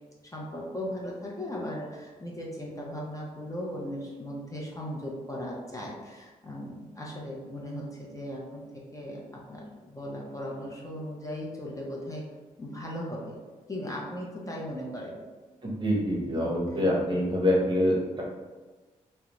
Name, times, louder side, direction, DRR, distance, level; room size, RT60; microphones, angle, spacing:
voice 1, 0.2-9.2 9.5-12.2 12.6-13.4 13.7-15.2 16.2-17.2, equal, 20° left, -3 dB, 0.7 m, -38 dB
voice 2, 15.6-18.2, left 1 dB, 35° right, -3 dB, 0.8 m, -25 dB
2.4 x 2.1 x 3.0 m, 1.3 s
supercardioid pair, 50°, 15 cm